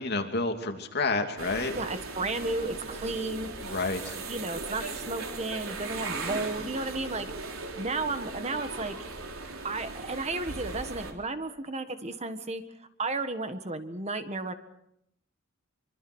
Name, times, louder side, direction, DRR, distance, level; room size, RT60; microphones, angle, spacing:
voice 1, 0.0-1.7 3.6-4.2 6.6-6.7 7.0-7.1, left 3 dB, 50° left, 4 dB, 2.9 m, -30 dB
sound 1, 1.4-11.1, right 3 dB, 85° right, 3.6 m, -38 dB
voice 2, 1.8-3.5 4.3-7.3 7.8-9.0 9.6-12.6 13.0-14.5, right 3 dB, 30° right, 9 dB, 1.6 m, -33 dB
25.0 x 25.0 x 6.3 m, 0.76 s
head